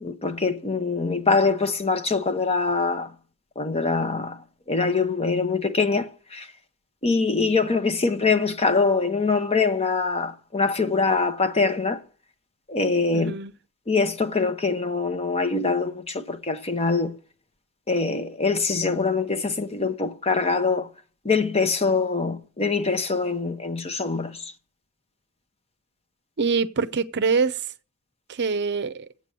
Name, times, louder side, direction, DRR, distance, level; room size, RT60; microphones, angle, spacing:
voice 1, 0.0-3.1 3.6-4.4 4.7-6.5 7.0-12.0 12.7-13.3 13.9-17.1 17.9-20.9 21.2-24.4, left 4 dB, 30° left, 0.8 m, -24 dB
voice 2, 13.1-13.5 26.4-27.6 28.3-29.1, right 5 dB, 50° right, 0.6 m, -24 dB
8.4 x 6.8 x 7.6 m
head